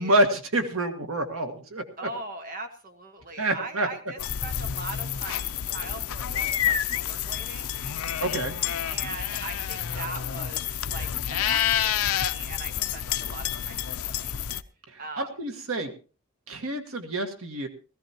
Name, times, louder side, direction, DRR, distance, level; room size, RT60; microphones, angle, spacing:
voice 1, 0.0-1.8 3.4-3.9 8.2-8.5 15.2-15.9 16.5-17.7, right 1 dB, 80° right, 6 dB, 1.7 m, -27 dB
voice 2, 2.0-7.8 8.9-14.3 15.0-15.3, right 2 dB, 40° right, 6 dB, 1.5 m, -41 dB
sound 1, 4.2-14.6, left 10 dB, 90° left, 0.6 m, -29 dB
18.0 x 15.0 x 2.9 m, 0.36 s
head